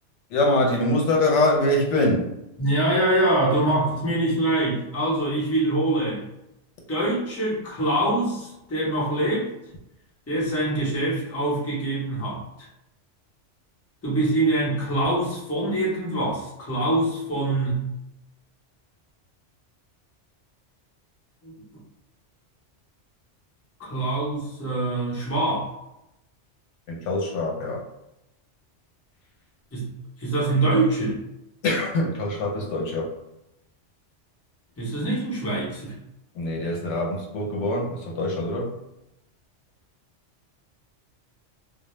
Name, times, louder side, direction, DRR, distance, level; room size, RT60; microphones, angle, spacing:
voice 1, 0.3-2.3 26.9-27.8 31.6-33.1 36.3-38.7, left 1 dB, 80° left, -1 dB, 0.9 m, -24 dB
voice 2, 2.6-6.2 6.9-9.5 10.3-12.4 14.0-17.9 21.4-21.5 23.8-25.7 29.7-31.2 34.8-35.9, right 1 dB, 15° left, -7 dB, 0.7 m, -24 dB
2.2 x 2.1 x 3.0 m, 0.87 s
omnidirectional pair, 1.2 m